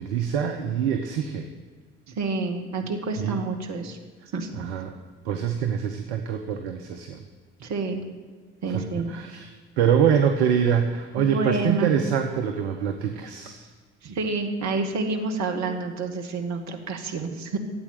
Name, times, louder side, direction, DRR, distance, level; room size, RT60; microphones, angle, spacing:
voice 1, 0.0-1.5 3.2-3.4 4.6-5.0 5.2-7.2 8.7-9.5 9.8-13.7, right 8 dB, 70° right, 5 dB, 1.1 m, -25 dB
voice 2, 2.1-4.0 4.3-4.5 7.6-8.1 8.6-9.1 11.2-11.9 14.0-17.6, right 3 dB, 55° right, 4 dB, 2.2 m, -28 dB
14.0 x 8.7 x 9.1 m, 1.5 s
figure-of-eight pair, 50°, 33 cm